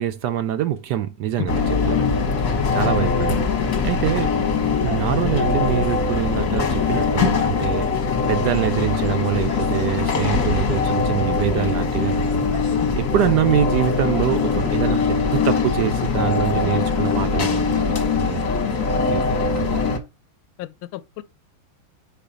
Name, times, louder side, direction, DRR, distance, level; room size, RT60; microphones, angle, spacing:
voice 1, 0.0-2.0 2.7-4.3 4.8-7.9 8.3-12.5 13.0-18.6 19.1-20.0, right 11 dB, 70° right, 1.0 m, -25 dB
sound 1, 1.5-20.0, left 4 dB, 45° left, 1.4 m, -21 dB
voice 2, 20.6-21.2, left 16 dB, 85° left, 1.4 m, -33 dB
5.1 x 4.6 x 5.0 m
omnidirectional pair, 2.2 m